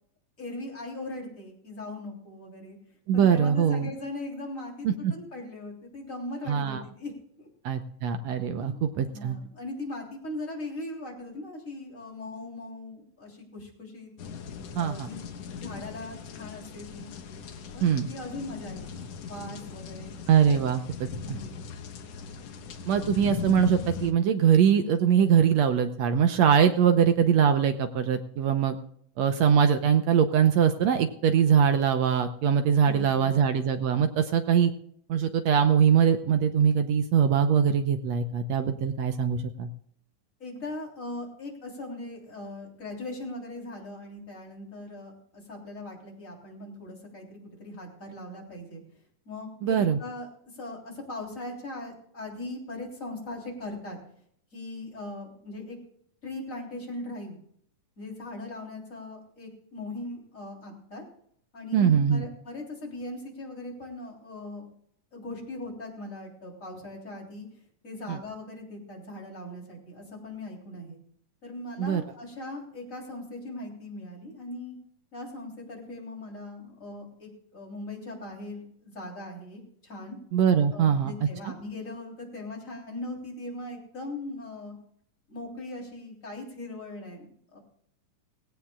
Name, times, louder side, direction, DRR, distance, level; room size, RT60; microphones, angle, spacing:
voice 1, 0.4-2.8 3.1-7.1 7.4-7.5 8.6-14.1 14.8-15.2 15.6-17.1 17.7-19.0 19.3-20.2 20.5-20.6 21.3-21.6 32.8-33.4 40.4-48.8 49.3-50.3 50.5-54.0 54.5-55.8 56.2-57.4 58.0-61.0 61.5-64.7 65.1-67.5 67.8-71.0 71.4-74.7 75.1-80.2 80.7-84.8 85.3-87.3 87.5-87.6, left 2 dB, 25° left, 0 dB, 3.6 m, -39 dB
voice 2, 3.1-3.9 4.8-5.1 6.5-6.8 7.6-9.4 14.8-15.1 17.8-18.1 20.3-21.4 22.9-28.8 29.2-34.7 35.1-39.7 49.6-50.0 61.7-62.2 68.1-68.2 71.8-72.0 80.3-81.1 81.4-81.5, right 8 dB, 70° right, 8 dB, 1.7 m, -22 dB
sound 1, 14.2-24.1, left 6 dB, 60° left, 2.0 m, -39 dB
18.0 x 17.5 x 2.4 m, 0.66 s
omnidirectional pair, 3.9 m